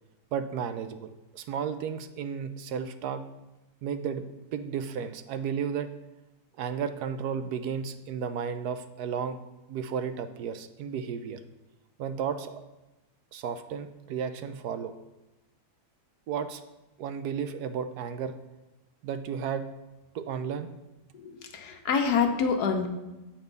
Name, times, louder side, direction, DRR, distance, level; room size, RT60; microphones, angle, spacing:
voice 1, 0.3-3.2 3.8-4.2 4.5-5.9 6.6-9.4 9.7-11.4 12.0-12.6 13.3-15.0 16.3-16.6 17.0-18.3 19.0-19.6 20.1-20.7, right 7 dB, 80° right, 10 dB, 1.2 m, -33 dB
voice 2, 21.1-22.9, left 5 dB, 80° left, 5 dB, 1.4 m, -26 dB
8.1 x 4.4 x 5.2 m, 1.0 s
omnidirectional pair, 1.7 m